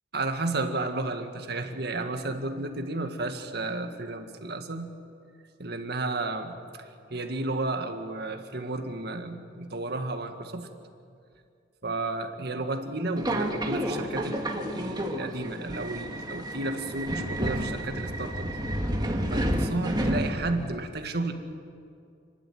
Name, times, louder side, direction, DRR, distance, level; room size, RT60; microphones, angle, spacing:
voice 1, 0.1-4.9 5.6-10.7 11.8-18.5 19.3-21.3, right 2 dB, 60° right, 6 dB, 1.9 m, -32 dB
Subway metro underground, 13.2-20.7, right 1 dB, 25° right, 1.9 m, -30 dB
29.5 x 12.0 x 9.3 m, 2.4 s
head